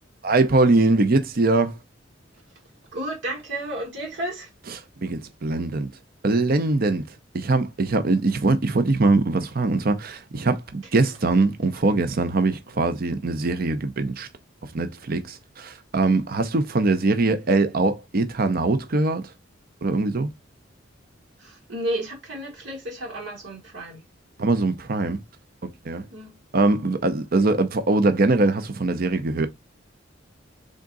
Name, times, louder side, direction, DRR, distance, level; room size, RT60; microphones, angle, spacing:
voice 1, 0.2-1.8 5.0-5.9 6.2-7.1 7.3-14.3 14.7-19.3 19.8-20.3 24.4-25.2 25.6-26.0 26.5-29.5, right 3 dB, 50° right, 0.6 m, -22 dB
voice 2, 2.9-4.5 21.4-24.0 26.1-26.4, right 1 dB, 70° right, 1.6 m, -32 dB
3.8 x 3.6 x 3.8 m
head